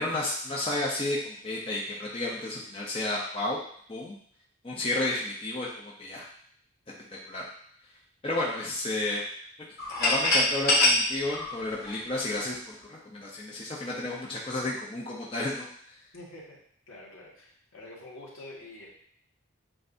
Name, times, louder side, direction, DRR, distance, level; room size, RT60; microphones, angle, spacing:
voice 1, 0.0-3.6 3.9-4.2 4.6-6.2 7.3-7.5 8.2-9.3 10.0-15.7, left 2 dB, 25° left, -4 dB, 0.6 m, -32 dB
sound 1, 9.8-12.5, left 2 dB, 45° left, 1.1 m, -25 dB
voice 2, 16.1-16.6 16.9-17.5 17.7-18.9, left 1 dB, 75° left, -5 dB, 1.6 m, -46 dB
7.6 x 2.6 x 2.6 m, 0.64 s
head